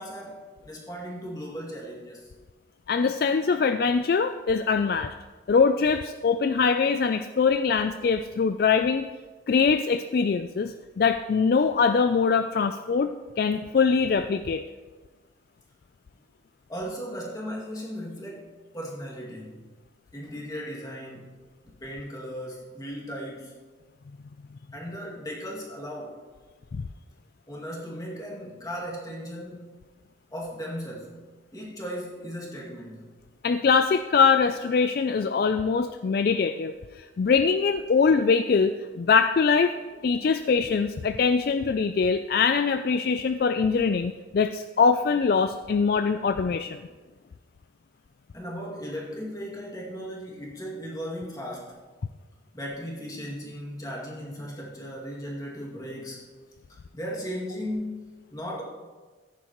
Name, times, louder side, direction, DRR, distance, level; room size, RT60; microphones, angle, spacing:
voice 1, 0.0-2.3 16.7-19.7 20.1-23.5 24.7-26.2 27.5-29.7 30.3-31.2 31.5-33.1 48.3-51.8 52.5-56.2 56.7-58.6, equal, 20° left, -4 dB, 2.3 m, -37 dB
voice 2, 2.9-5.1 5.5-9.1 9.5-13.1 13.4-14.6 33.4-39.8 40.0-46.8, left 5 dB, 50° left, 9 dB, 0.3 m, -23 dB
14.5 x 10.0 x 3.0 m, 1.3 s
head